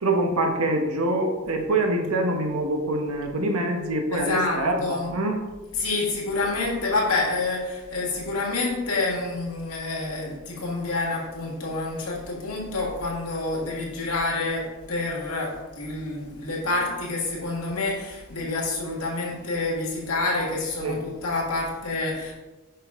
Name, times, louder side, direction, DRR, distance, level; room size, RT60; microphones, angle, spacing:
voice 1, 0.0-5.4 20.8-21.0, right 2 dB, 75° right, 3 dB, 1.0 m, -25 dB
voice 2, 4.1-5.1 5.8-22.3, left 2 dB, 80° left, -3 dB, 1.8 m, -28 dB
5.8 x 5.4 x 3.6 m, 1.2 s
head